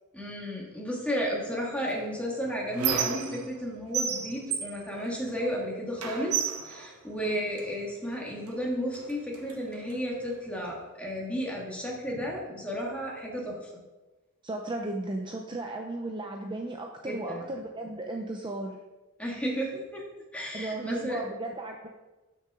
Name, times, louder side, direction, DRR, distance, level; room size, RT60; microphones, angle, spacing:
voice 1, 0.1-13.6 17.0-17.4 19.2-20.0 20.3-21.2, equal, 5° left, -3 dB, 2.1 m, -33 dB
Squeak, 1.9-3.7 3.9-5.6 6.0-7.7 8.5-8.6 8.9-10.0, right 7 dB, 90° right, 1.2 m, -33 dB
voice 2, 14.4-18.8 20.5-21.9, right 2 dB, 20° right, 2 dB, 0.6 m, -35 dB
12.5 x 6.2 x 3.7 m, 1.1 s
head